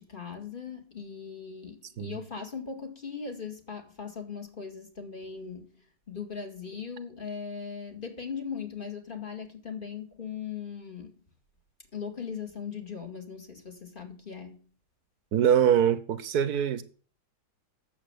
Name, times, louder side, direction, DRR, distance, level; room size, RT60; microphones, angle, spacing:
voice 1, 0.0-11.2 11.9-14.7, left 6 dB, 25° left, 2.3 m, -39 dB
voice 2, 15.3-16.8, right 9 dB, 60° right, 1.4 m, -23 dB
9.1 x 7.5 x 8.0 m
omnidirectional pair, 2.0 m